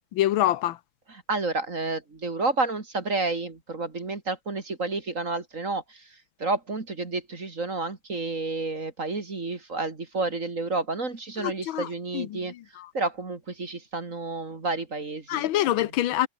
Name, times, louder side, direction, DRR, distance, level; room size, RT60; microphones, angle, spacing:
voice 1, 0.1-0.8 11.4-11.9 12.1-12.9 15.3-16.3, left 13 dB, 75° left, 1.6 m, -26 dB
voice 2, 1.1-6.0 6.4-12.5 12.9-15.8, right 3 dB, 40° right, 2.9 m, -30 dB
omnidirectional pair, 2.2 m